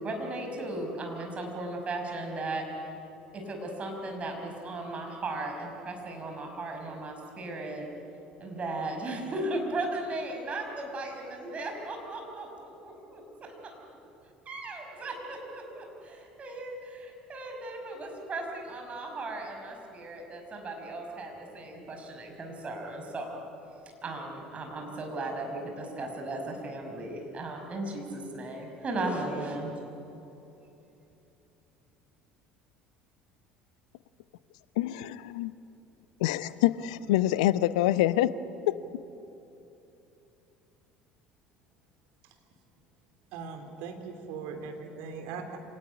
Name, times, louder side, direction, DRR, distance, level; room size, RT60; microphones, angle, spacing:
voice 1, 0.0-2.6 3.3-7.9 8.4-13.7 14.5-23.4 24.0-29.7, right 2 dB, 35° right, 3 dB, 5.6 m, -36 dB
voice 2, 34.8-35.5 36.2-38.3 38.7-38.8, left 14 dB, 65° left, 16 dB, 0.7 m, -26 dB
voice 3, 43.3-45.6, right 5 dB, 60° right, 4 dB, 3.1 m, -39 dB
25.5 x 18.5 x 9.9 m, 2.9 s
figure-of-eight pair, 60°, 4 cm